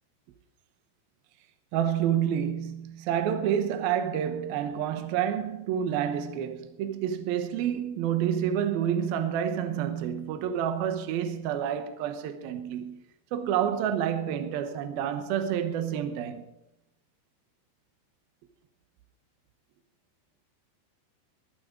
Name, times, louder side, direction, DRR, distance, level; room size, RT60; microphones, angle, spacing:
voice 1, 1.7-13.0 13.3-16.4, right 9 dB, 70° right, 2.5 m, -29 dB
22.5 x 7.6 x 5.2 m
omnidirectional pair, 5.2 m